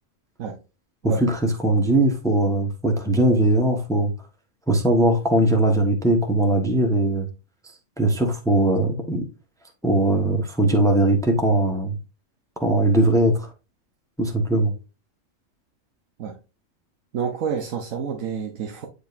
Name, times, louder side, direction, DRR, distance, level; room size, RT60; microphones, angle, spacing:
voice 1, 1.0-4.1 4.7-7.3 8.0-9.2 9.8-12.0 12.6-13.5 14.2-14.7, right 1 dB, 5° left, 1.1 m, -20 dB
voice 2, 17.1-18.9, right 7 dB, 85° right, 1.3 m, -29 dB
9.4 x 5.1 x 2.5 m
omnidirectional pair, 1.3 m